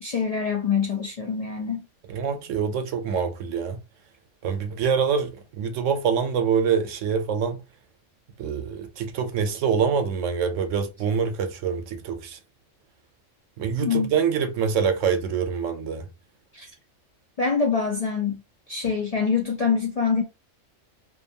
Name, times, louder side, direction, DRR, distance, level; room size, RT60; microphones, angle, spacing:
voice 1, 0.0-1.9 13.8-14.1 16.5-16.7 17.4-18.4 18.7-20.2, left 6 dB, 55° left, 0.4 m, -25 dB
voice 2, 2.1-3.8 4.4-7.6 8.4-12.4 13.6-16.0, right 6 dB, 85° right, 1.0 m, -25 dB
2.7 x 2.2 x 2.6 m
omnidirectional pair, 1.3 m